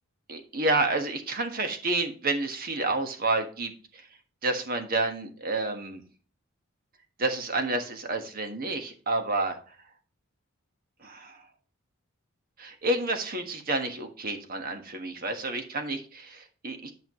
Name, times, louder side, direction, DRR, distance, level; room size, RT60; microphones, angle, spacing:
voice 1, 0.3-4.1 4.4-6.0 7.2-9.6 11.0-11.4 12.6-16.9, right 2 dB, 45° right, 6 dB, 1.4 m, -29 dB
11.0 x 5.7 x 3.1 m, 0.40 s
head